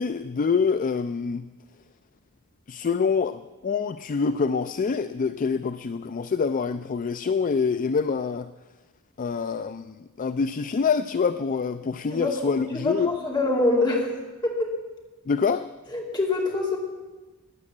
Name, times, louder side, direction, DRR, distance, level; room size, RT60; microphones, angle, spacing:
voice 1, 0.0-1.5 2.7-8.5 9.2-13.2 15.3-15.7, left 5 dB, 40° left, 12 dB, 0.4 m, -26 dB
voice 2, 12.7-14.1 14.4-14.7 15.9-16.8, left 2 dB, 20° left, -1 dB, 2.6 m, -24 dB
15.0 x 9.6 x 7.3 m, 1.2 s
head